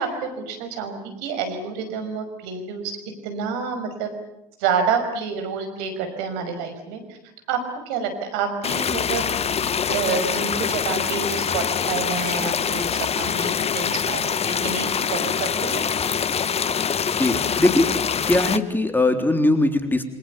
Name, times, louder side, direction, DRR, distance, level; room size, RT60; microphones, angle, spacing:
voice 1, 0.0-3.0 3.2-4.1 4.6-7.2 7.5-9.3 9.9-15.9, right 5 dB, 65° right, 7 dB, 5.7 m, -28 dB
sound 1, 8.6-18.6, left 7 dB, 30° left, 1.2 m, -24 dB
voice 2, 17.2-17.9 18.3-20.0, left 2 dB, 10° left, 6 dB, 3.5 m, -20 dB
28.0 x 25.5 x 7.1 m, 0.84 s
hypercardioid pair, 70°, 21 cm